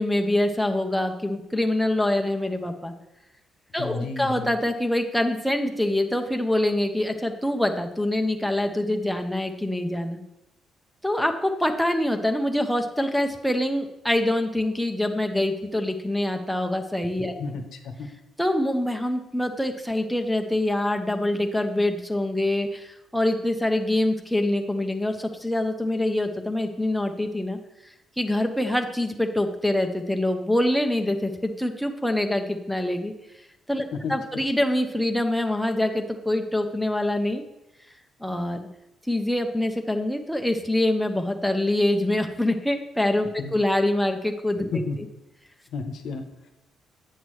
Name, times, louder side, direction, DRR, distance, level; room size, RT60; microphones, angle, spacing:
voice 1, 0.0-2.9 3.7-10.2 11.0-17.4 18.4-27.6 28.2-33.1 33.7-37.4 38.2-38.7 39.1-44.8, left 1 dB, ahead, 4 dB, 0.6 m, -25 dB
voice 2, 3.8-4.5 17.4-18.1 34.0-34.1 43.4-43.5 44.7-45.0 45.7-46.5, left 4 dB, 75° left, 6 dB, 0.8 m, -32 dB
8.2 x 5.9 x 3.2 m, 0.91 s
cardioid pair, 90°, 0 cm